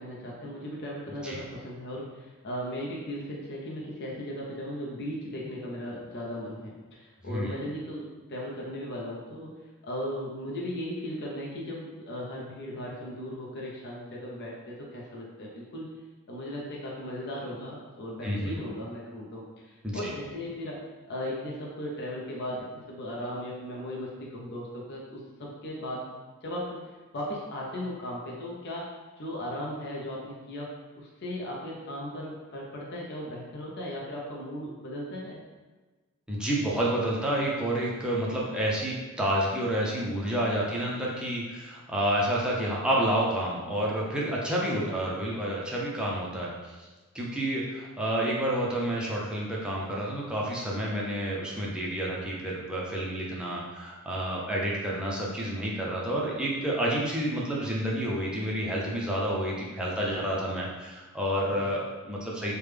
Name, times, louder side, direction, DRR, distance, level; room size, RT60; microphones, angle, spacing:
voice 1, 0.0-16.0 16.3-26.1 26.4-26.8 27.1-30.7 31.0-35.4 44.6-45.1 61.5-61.6, equal, 50° left, -3 dB, 0.6 m, -37 dB
voice 2, 18.2-18.5 19.8-20.1 36.3-46.9 47.1-62.6, right 1 dB, 5° right, -5 dB, 0.5 m, -29 dB
3.3 x 2.2 x 3.3 m, 1.3 s
head